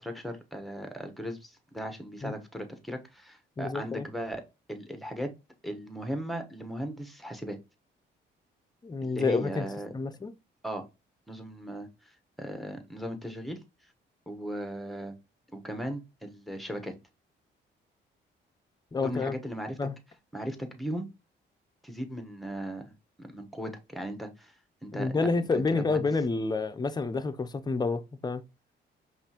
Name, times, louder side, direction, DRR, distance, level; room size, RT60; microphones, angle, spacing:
voice 1, 0.0-4.4 4.7-5.3 5.6-7.6 9.0-9.9 10.6-10.9 11.3-12.1 12.4-13.6 14.3-15.1 15.5-16.9 19.0-19.8 20.3-21.1 21.8-22.9 23.2-24.5 24.8-26.0, equal, ahead, 1.0 m, -37 dB
voice 2, 3.6-4.1 8.8-9.7 9.9-10.3 18.9-19.4 19.8-19.9 24.9-28.4, left 4 dB, 20° left, 0.5 m, -29 dB
5.3 x 2.5 x 2.8 m
cardioid pair, 90°, 20 cm